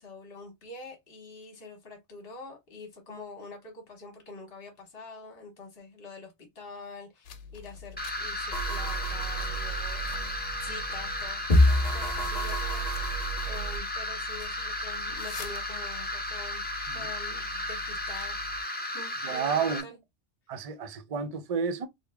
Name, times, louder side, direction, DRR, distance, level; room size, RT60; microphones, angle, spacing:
voice 1, 0.0-10.0 10.6-11.4 11.9-16.6 16.9-18.4 18.9-20.0, left 3 dB, 55° left, 1.4 m, -45 dB
sound 1, 7.2-18.6, left 6 dB, 75° left, 0.9 m, -46 dB
sound 2, 8.0-19.8, left 1 dB, 15° left, 0.3 m, -34 dB
sound 3, 8.5-13.8, equal, 40° left, 1.1 m, -28 dB
voice 2, 19.2-19.9 20.5-21.9, right 6 dB, 50° right, 0.4 m, -31 dB
3.6 x 2.0 x 3.4 m
omnidirectional pair, 1.2 m